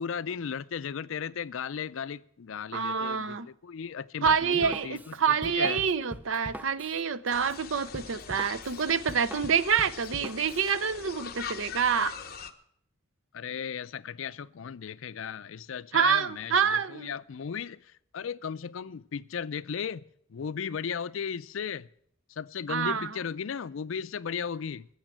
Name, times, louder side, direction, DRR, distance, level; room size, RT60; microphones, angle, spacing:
voice 1, 0.0-5.8 13.3-20.0 20.3-21.9 22.3-24.9, left 7 dB, 75° left, 0.4 m, -36 dB
voice 2, 2.7-3.5 4.2-12.1 15.9-17.1 22.7-23.1, right 6 dB, 70° right, 0.6 m, -27 dB
Drum kit, 4.3-10.7, right 1 dB, 10° right, 0.4 m, -43 dB
sound 1, 7.3-12.5, left 7 dB, 45° left, 0.9 m, -42 dB
15.0 x 7.3 x 9.0 m
head